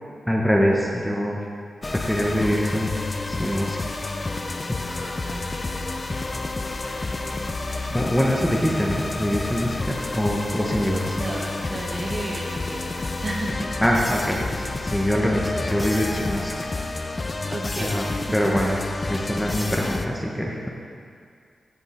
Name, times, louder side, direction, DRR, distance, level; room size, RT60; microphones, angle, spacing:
voice 1, 0.3-1.5 1.9-3.0 3.3-3.8 4.8-5.2 6.9-7.1 7.9-11.2 13.8-16.7 17.8-18.0 18.3-18.8 19.0-20.7, equal, 5° left, -2 dB, 0.8 m, -24 dB
sound 1, 1.8-20.1, left 2 dB, 25° left, 0.4 m, -29 dB
voice 2, 5.2-5.9 11.1-13.0 13.2-13.9 17.5-18.3, right 2 dB, 35° right, 0 dB, 1.1 m, -33 dB
14.0 x 5.3 x 4.2 m, 2.3 s
wide cardioid pair, 150°, 0 cm